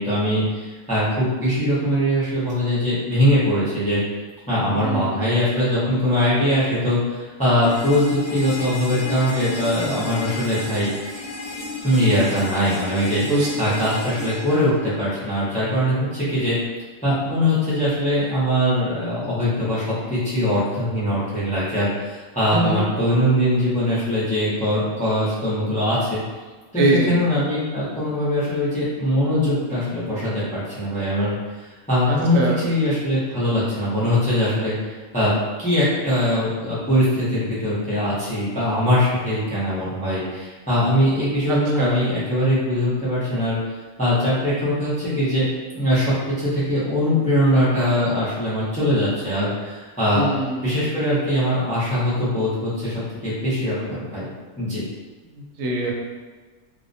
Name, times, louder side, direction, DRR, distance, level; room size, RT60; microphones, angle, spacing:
voice 1, 0.0-4.0 4.5-10.9 11.8-13.2 13.6-16.6 17.0-26.2 26.7-31.4 31.9-32.4 32.6-35.3 35.6-43.6 44.0-45.5 45.7-50.3 50.6-52.9 53.2-54.2 54.6-54.8, equal, 10° left, -10 dB, 0.4 m, -21 dB
voice 2, 4.7-5.3 13.2-13.9 22.5-22.8 26.8-27.1 32.1-32.6 41.5-42.1 50.1-50.7 55.3-55.9, right 2 dB, 90° right, -2 dB, 1.0 m, -23 dB
sound 1, 7.6-15.6, left 2 dB, 40° left, 0.9 m, -33 dB
2.3 x 2.1 x 2.5 m, 1.3 s
omnidirectional pair, 1.3 m